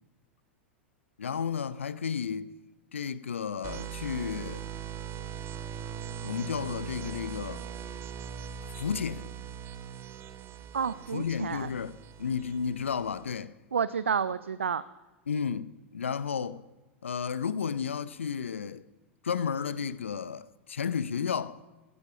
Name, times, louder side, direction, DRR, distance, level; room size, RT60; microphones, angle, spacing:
voice 1, 1.2-2.5 2.9-4.7 6.2-7.6 8.6-9.3 11.1-11.9 12.2-13.5 15.3-16.6 17.0-18.8 19.2-21.6, left 6 dB, 75° left, 0.6 m, -32 dB
sound 1, 3.6-13.3, right 8 dB, 40° right, 1.2 m, -40 dB
voice 2, 10.7-11.7 13.7-14.8, right 6 dB, 75° right, 0.5 m, -30 dB
15.5 x 12.0 x 5.8 m
figure-of-eight pair, 90°, 7 cm